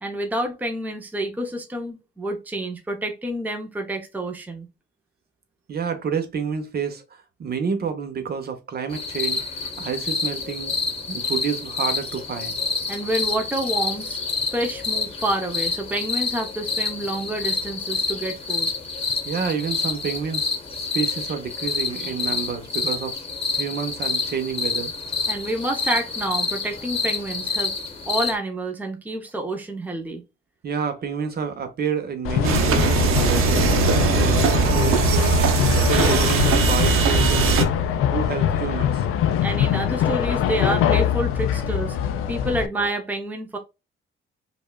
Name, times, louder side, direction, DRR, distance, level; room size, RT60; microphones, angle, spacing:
voice 1, 0.0-4.7 12.9-14.2 14.5-18.7 25.3-27.7 28.1-30.2 39.4-42.0 42.3-43.6, right 1 dB, 10° right, 0.6 m, -28 dB
voice 2, 5.7-9.4 9.8-10.7 11.1-12.6 19.2-23.2 23.5-24.9 30.6-33.8 34.1-35.4 35.8-37.7 38.1-39.0 41.5-41.6 42.2-42.4, right 6 dB, 50° right, 0.8 m, -29 dB
sound 1, 8.9-28.3, left 4 dB, 25° left, 0.9 m, -28 dB
sound 2, 32.2-42.7, left 9 dB, 85° left, 0.5 m, -23 dB
sound 3, 32.4-37.6, right 6 dB, 90° right, 0.7 m, -20 dB
5.1 x 2.3 x 2.2 m
cardioid pair, 130°, 21 cm